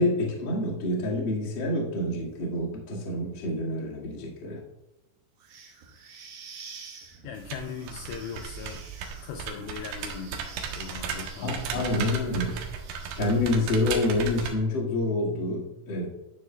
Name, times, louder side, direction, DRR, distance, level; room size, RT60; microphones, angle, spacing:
voice 1, 0.0-4.6 11.4-12.6 13.2-16.1, left 2 dB, 65° left, -4 dB, 1.2 m, -27 dB
sound 1, 5.4-13.7, right 5 dB, 90° right, 1.7 m, -49 dB
voice 2, 7.2-8.9 9.2-10.4 10.8-12.1, left 7 dB, 85° left, 5 dB, 2.5 m, -39 dB
sound 2, 7.3-14.5, right 6 dB, 70° right, 2.5 m, -36 dB
12.0 x 10.0 x 2.3 m, 0.96 s
omnidirectional pair, 5.7 m